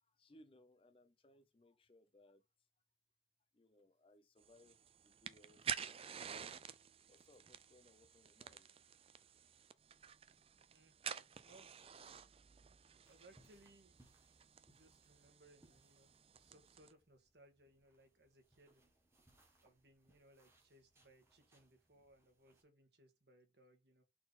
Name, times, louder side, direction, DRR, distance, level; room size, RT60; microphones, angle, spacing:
voice 1, 0.0-2.4 3.5-6.0 7.1-8.7 9.2-9.3 10.5-10.8 12.7-12.9, left 1 dB, 30° left, 0.5 m, -68 dB
sound 1, 4.4-16.9, right 8 dB, 30° right, 0.4 m, -50 dB
voice 2, 11.4-11.7 13.1-14.0 14.6-18.8 19.6-24.0, right 1 dB, 60° right, 1.7 m, -67 dB
sound 2, 13.0-22.6, right 1 dB, 15° right, 1.3 m, -73 dB
4.4 x 4.1 x 5.5 m
head